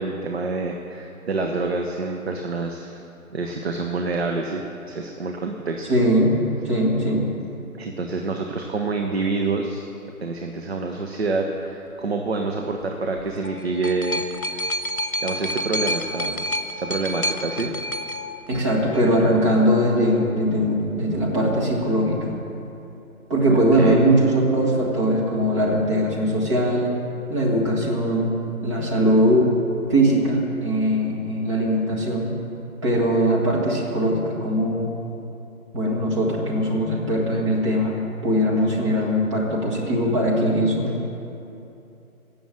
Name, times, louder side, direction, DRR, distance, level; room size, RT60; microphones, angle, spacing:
voice 1, 0.0-3.0 3.3-5.9 7.8-9.8 10.2-14.3 15.2-16.5 16.7-17.8 23.5-24.0, right 3 dB, 45° right, 3 dB, 1.0 m, -27 dB
voice 2, 5.9-6.3 6.7-7.2 18.5-22.4 23.3-26.9 27.3-28.3 28.6-29.5 29.9-32.3 32.8-34.9 35.7-38.0 38.2-40.9, equal, 20° right, -4 dB, 1.9 m, -20 dB
sound 1, 13.2-19.2 20.1-20.2, equal, 70° left, 1.0 m, -29 dB
17.5 x 7.1 x 7.5 m, 2.8 s
figure-of-eight pair, 155°, 44 cm